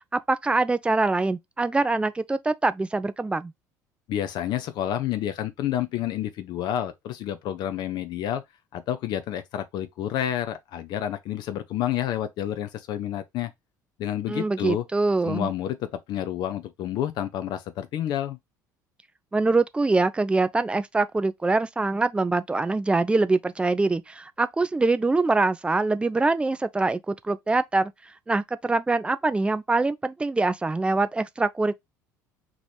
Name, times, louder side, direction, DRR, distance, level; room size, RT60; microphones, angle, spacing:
voice 1, 0.1-3.5 14.3-15.5 19.3-27.9 28.3-31.7, right 3 dB, 10° right, 0.4 m, -24 dB
voice 2, 4.1-8.4 8.7-13.5 14.0-14.8 15.2-18.4, left 11 dB, 45° left, 0.6 m, -29 dB
6.1 x 3.0 x 2.3 m
figure-of-eight pair, 60°, 10 cm